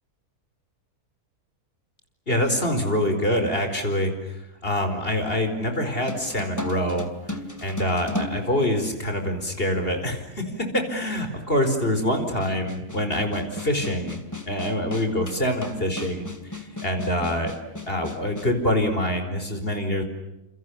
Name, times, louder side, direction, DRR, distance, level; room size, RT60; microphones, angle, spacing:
voice 1, 2.3-4.1 4.6-7.1 7.6-14.2 14.5-17.5 17.9-20.0, left 1 dB, 35° left, 6 dB, 5.0 m, -25 dB
sound 1, 6.1-9.3 10.1-10.2 12.4-18.5, left 1 dB, 10° left, 2.6 m, -35 dB
29.5 x 28.5 x 7.1 m, 0.91 s
omnidirectional pair, 1.6 m